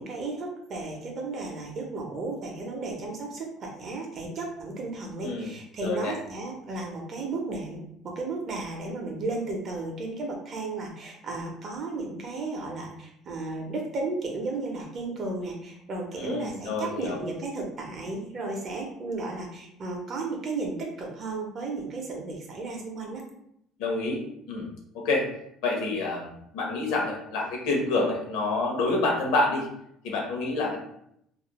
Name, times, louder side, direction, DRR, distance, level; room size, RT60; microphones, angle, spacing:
voice 1, 0.0-23.2, right 3 dB, 35° right, 0 dB, 0.6 m, -34 dB
voice 2, 5.2-5.5 5.8-6.1 16.2-17.2 23.8-24.7 24.9-25.3 25.6-29.7 30.0-30.8, left 2 dB, 75° left, 0 dB, 0.7 m, -28 dB
2.4 x 2.0 x 2.9 m, 0.75 s
cardioid pair, 155°, 0 cm